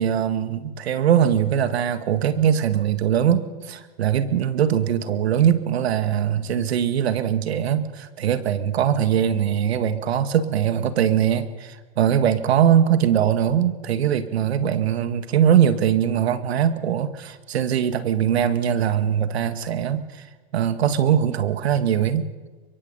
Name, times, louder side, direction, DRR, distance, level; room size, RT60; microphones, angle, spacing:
voice 1, 0.0-20.0 20.5-22.3, right 9 dB, 75° right, 12 dB, 1.8 m, -21 dB
23.5 x 23.0 x 5.5 m, 1.3 s
hypercardioid pair, 115°, 32 cm